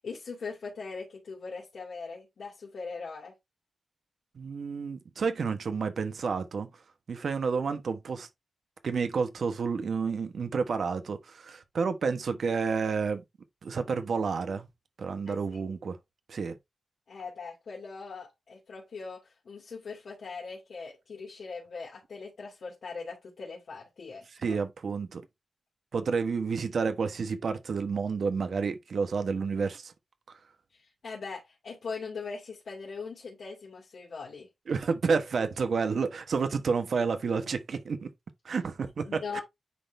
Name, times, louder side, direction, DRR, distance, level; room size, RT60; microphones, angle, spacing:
voice 1, 0.0-3.3 15.3-15.4 17.1-24.6 30.7-34.5 39.1-39.4, left 4 dB, 70° left, 2.5 m, -40 dB
voice 2, 4.3-6.7 7.1-8.3 8.8-13.2 13.6-14.7 15.0-16.0 16.3-16.6 24.4-25.2 25.9-29.9 34.7-38.1 38.4-39.4, right 5 dB, 65° right, 1.2 m, -30 dB
9.8 x 3.9 x 3.3 m
wide cardioid pair, 175°, 0 cm